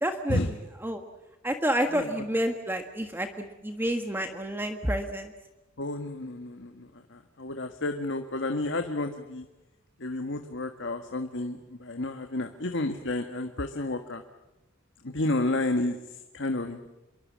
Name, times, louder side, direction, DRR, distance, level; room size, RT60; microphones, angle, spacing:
voice 1, 0.0-0.4 0.8-1.0 1.4-5.3, equal, 10° right, 6 dB, 1.6 m, -29 dB
voice 2, 1.9-2.3 5.8-9.4 10.0-14.2 15.0-16.9, left 2 dB, 65° left, 6 dB, 1.6 m, -31 dB
27.5 x 23.5 x 7.5 m, 1.0 s
head